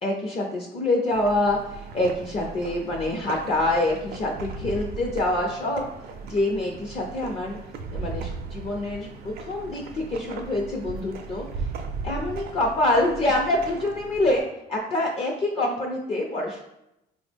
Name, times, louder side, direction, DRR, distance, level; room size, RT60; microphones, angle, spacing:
voice 1, 0.0-5.9 6.2-7.6 7.9-11.7 12.0-14.4 14.7-16.6, left 1 dB, 35° left, 0 dB, 0.4 m, -26 dB
sound 1, 1.1-14.4, right 4 dB, 65° right, 0.4 m, -37 dB
3.6 x 2.0 x 3.3 m, 0.85 s
cardioid pair, 110°, 17 cm